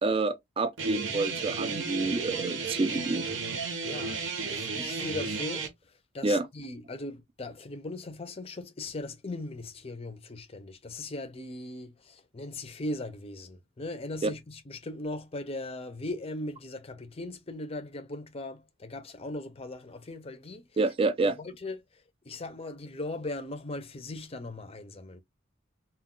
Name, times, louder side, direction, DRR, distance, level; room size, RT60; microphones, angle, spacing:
voice 1, 0.0-3.3 6.2-6.4 14.2-14.3 20.8-21.4, right 3 dB, 25° right, 0.4 m, -28 dB
Guitar, 0.8-5.7, right 4 dB, 65° right, 0.8 m, -33 dB
voice 2, 3.8-20.6 21.4-25.2, left 2 dB, 30° left, 0.5 m, -39 dB
2.3 x 2.2 x 3.7 m
head